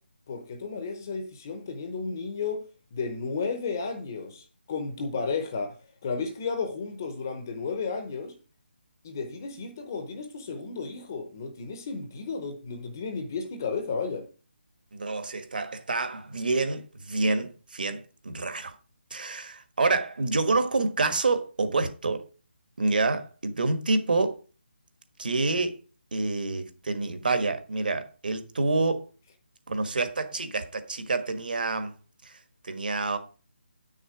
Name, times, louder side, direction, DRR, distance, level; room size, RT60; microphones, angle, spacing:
voice 1, 0.3-8.3 9.0-14.3, left 4 dB, 15° left, 0.7 m, -33 dB
voice 2, 14.9-18.8 19.1-22.2 22.8-24.4 25.2-25.7 26.1-29.1 29.7-31.9 32.2-33.2, right 3 dB, 55° right, 1.4 m, -28 dB
8.5 x 6.4 x 4.9 m
hypercardioid pair, 180°, 6 cm